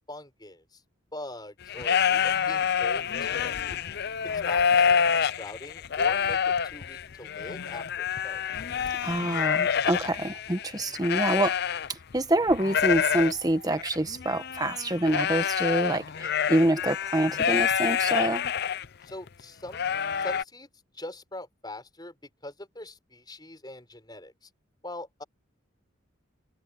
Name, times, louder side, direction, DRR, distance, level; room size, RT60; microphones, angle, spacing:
voice 1, 0.1-0.8 1.1-3.8 4.2-8.4 19.0-20.7 20.9-22.1 22.4-24.5 24.8-25.2, left 1 dB, 20° left, 6.4 m, -42 dB
sound 1, 1.6-12.2 12.5-18.8 19.3-19.4 19.7-20.4, left 7 dB, 50° left, 0.5 m, -27 dB
voice 2, 9.0-11.6 11.9-18.5, right 1 dB, 20° right, 1.2 m, -26 dB
head